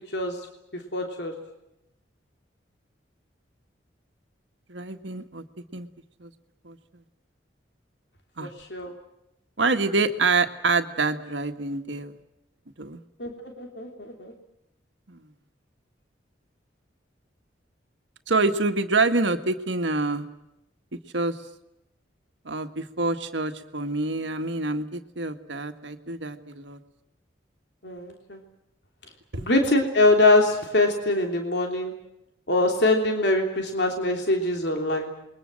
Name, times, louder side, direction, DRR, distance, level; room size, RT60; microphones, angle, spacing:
voice 1, 0.9-1.3 8.4-8.9 13.2-14.3 27.8-28.4 29.4-31.9 32.5-35.1, left 2 dB, 65° left, 3 dB, 3.2 m, -23 dB
voice 2, 4.7-5.4 5.7-5.9 6.2-6.3 6.6-6.8 8.4-8.5 9.6-12.1 12.8-13.0 15.1-15.3 18.3-20.3 21.1-21.4 22.4-26.8 29.3-29.4, right 3 dB, 75° right, 7 dB, 1.7 m, -26 dB
28.5 x 22.0 x 7.7 m, 0.88 s
head